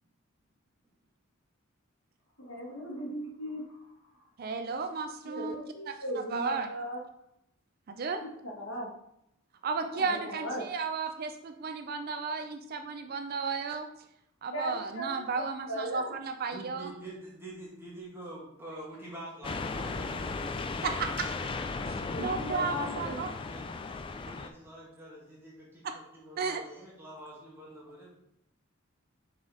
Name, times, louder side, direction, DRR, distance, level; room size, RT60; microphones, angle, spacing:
voice 1, 2.4-3.6 5.2-7.0 8.2-8.9 9.7-10.6 14.5-16.1 22.0-23.2, equal, 65° left, -1 dB, 1.5 m, -38 dB
voice 2, 4.4-6.7 7.9-8.2 9.6-13.9 14.4-16.9 20.8-21.3 22.2-23.3 25.8-25.9 26.4-26.6, right 4 dB, 45° right, 7 dB, 0.4 m, -34 dB
voice 3, 16.5-20.4 22.5-23.6 24.1-28.1, right 1 dB, 10° right, -5 dB, 1.9 m, -46 dB
sound 1, 19.4-24.5, left 3 dB, 25° left, 0.3 m, -36 dB
6.1 x 4.2 x 3.8 m, 0.79 s
head